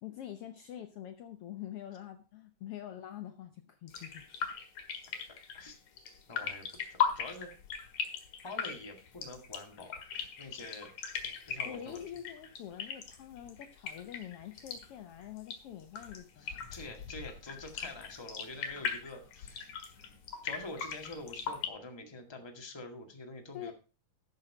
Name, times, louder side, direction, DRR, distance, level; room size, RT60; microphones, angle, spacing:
voice 1, 0.0-4.5 11.6-16.6 23.5-23.7, left 11 dB, 90° left, 7 dB, 1.3 m, -45 dB
sound 1, 3.9-21.7, left 7 dB, 65° left, 3.0 m, -39 dB
voice 2, 5.3-5.8 6.3-7.5 8.4-9.9 10.4-10.9 11.4-12.0 16.4-19.7 20.4-23.7, left 2 dB, 15° left, 3 dB, 1.2 m, -46 dB
13.0 x 6.6 x 4.9 m, 0.33 s
omnidirectional pair, 3.8 m